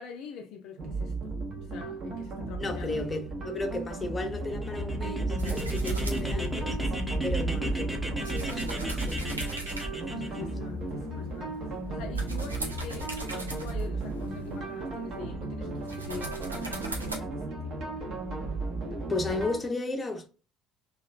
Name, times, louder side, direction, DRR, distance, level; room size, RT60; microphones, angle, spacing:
voice 1, 0.0-1.4 1.7-3.0 6.2-6.6 10.1-17.8, left 6 dB, 55° left, 0.4 m, -44 dB
sound 1, 0.8-19.6, right 3 dB, 45° right, 0.8 m, -35 dB
voice 2, 2.6-6.7 7.2-9.6 9.9-10.5 19.1-20.3, left 2 dB, 20° left, 0.7 m, -34 dB
sound 2, 4.3-10.4, right 1 dB, 10° right, 0.8 m, -32 dB
sound 3, 5.4-15.2 15.7-17.2, right 2 dB, 85° right, 0.5 m, -41 dB
2.9 x 2.3 x 2.4 m
figure-of-eight pair, 55°, 0 cm